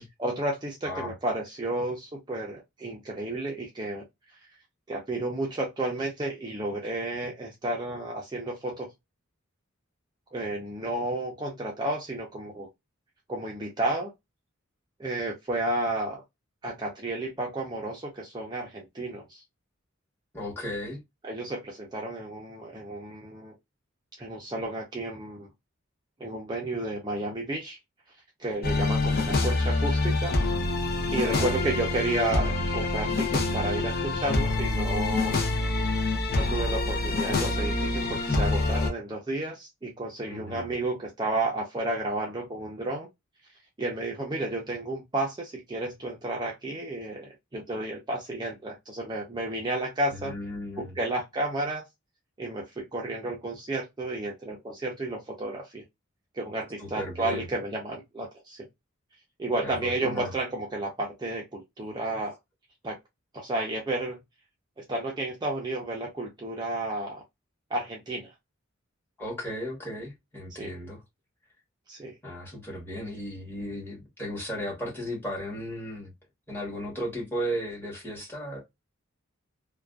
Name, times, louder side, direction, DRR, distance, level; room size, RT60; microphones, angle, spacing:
voice 1, 0.0-4.1 4.9-8.9 10.3-12.7 13.3-14.1 15.0-16.2 16.6-19.4 21.2-23.6 24.2-25.5 26.2-27.8 28.4-30.4 31.1-35.4 36.3-43.1 43.8-50.3 50.8-51.8 52.4-55.8 56.3-58.6 59.4-62.4 62.8-63.0 63.3-64.2 64.8-67.2 67.7-68.3 70.6-70.7 71.9-72.1, right 2 dB, 20° right, 0.5 m, -32 dB
voice 2, 20.3-21.0 31.2-31.6 40.3-40.7 50.1-50.9 56.8-57.4 59.6-60.3 69.2-71.0 72.2-76.1 76.5-78.6, equal, 10° left, 1.1 m, -35 dB
sound 1, 28.6-38.9, left 2 dB, 50° left, 0.5 m, -26 dB
2.4 x 2.2 x 2.2 m
head